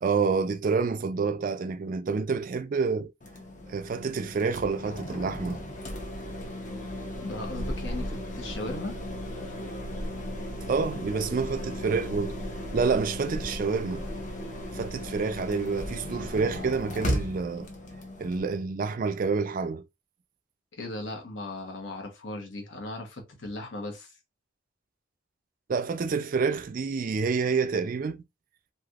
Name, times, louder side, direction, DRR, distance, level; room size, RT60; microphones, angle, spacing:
voice 1, 0.0-3.1 3.7-5.6 10.7-12.4 12.7-14.1 14.7-17.7 18.2-19.8 25.7-28.2, right 5 dB, 45° right, 0.3 m, -28 dB
sound 1, 3.2-18.4, equal, 40° left, 0.8 m, -36 dB
voice 2, 7.2-9.0 20.7-24.2, left 2 dB, 70° left, 1.0 m, -37 dB
3.3 x 2.7 x 2.4 m
head